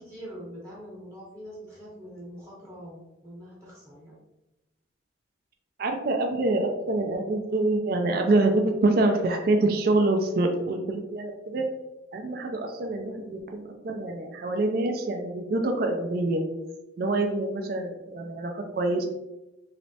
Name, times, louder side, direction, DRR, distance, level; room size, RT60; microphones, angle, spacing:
voice 1, 0.0-4.2, equal, 15° right, -6 dB, 0.8 m, -43 dB
voice 2, 5.8-11.7 12.1-16.5 17.0-19.0, right 2 dB, 50° right, 4 dB, 0.4 m, -26 dB
3.2 x 3.0 x 2.7 m, 0.97 s
head